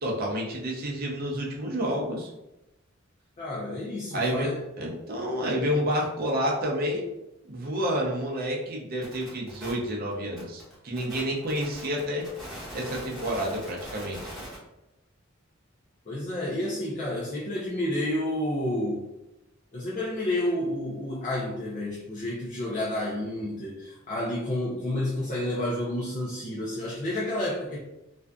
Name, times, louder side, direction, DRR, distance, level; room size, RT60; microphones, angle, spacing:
voice 1, 0.0-2.3 4.1-4.5 4.8-7.1 7.5-12.3 12.7-14.2, equal, 45° right, -2 dB, 0.6 m, -29 dB
voice 2, 3.4-4.6 16.1-19.0 19.7-27.8, left 1 dB, 35° left, -7 dB, 0.4 m, -30 dB
sound 1, 9.0-14.6, equal, ahead, 1.0 m, -41 dB
2.5 x 2.3 x 2.2 m, 0.94 s
head